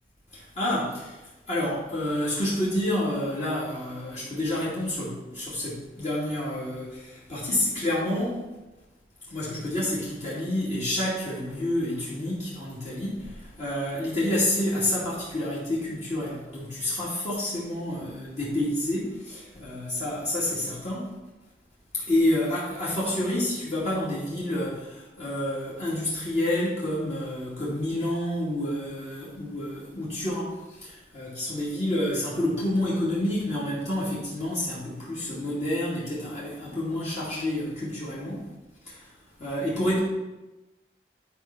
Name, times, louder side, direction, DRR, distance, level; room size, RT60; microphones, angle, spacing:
voice 1, 0.3-8.4 9.3-21.1 21.9-38.5 38.8-39.1 39.4-40.0, left 1 dB, 40° left, -8 dB, 2.4 m, -29 dB
11.0 x 4.5 x 6.0 m, 1.1 s
head